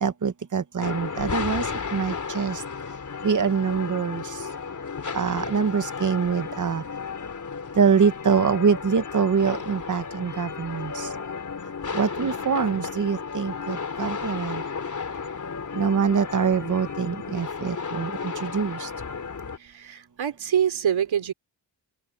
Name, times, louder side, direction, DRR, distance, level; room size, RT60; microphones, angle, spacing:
voice 1, 0.0-1.7 1.9-2.6 3.2-4.2 5.1-6.8 7.8-11.1 11.9-14.6 15.7-18.9, right 6 dB, 40° right, 1.2 m, -24 dB
sound 1, 0.8-19.6, left 5 dB, 40° left, 3.5 m, -33 dB
voice 2, 19.6-21.3, right 9 dB, 80° right, 4.1 m, -25 dB
open air
wide cardioid pair, 150°, 46 cm